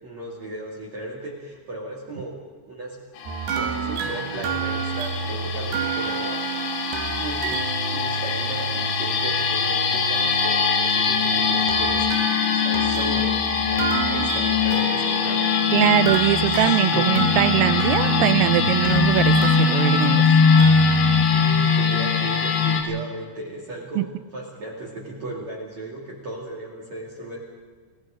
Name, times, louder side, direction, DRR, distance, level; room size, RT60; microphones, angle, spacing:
voice 1, 0.0-2.4 2.7-3.0 3.5-6.4 7.1-7.5 7.9-15.7 16.3-16.6 16.9-17.1 21.3-24.0 24.3-27.4, right 1 dB, 40° right, -4 dB, 3.3 m, -36 dB
sound 1, 3.2-22.8, left 5 dB, 80° left, 4.5 m, -22 dB
sound 2, 3.3-21.3, right 6 dB, 70° right, 2.9 m, -30 dB
voice 2, 15.7-20.3 24.0-24.1, right 15 dB, 85° right, 13 dB, 3.4 m, -21 dB
30.0 x 18.0 x 5.2 m, 1.5 s
omnidirectional pair, 5.8 m